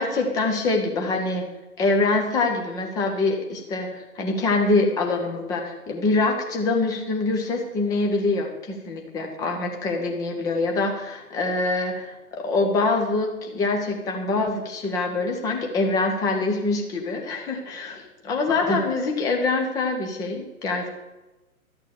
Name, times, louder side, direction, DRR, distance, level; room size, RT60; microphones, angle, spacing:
voice 1, 0.0-1.5 1.8-20.9, left 3 dB, 10° left, 2 dB, 0.9 m, -24 dB
12.5 x 6.6 x 6.5 m, 1.1 s
figure-of-eight pair, 130°, 44 cm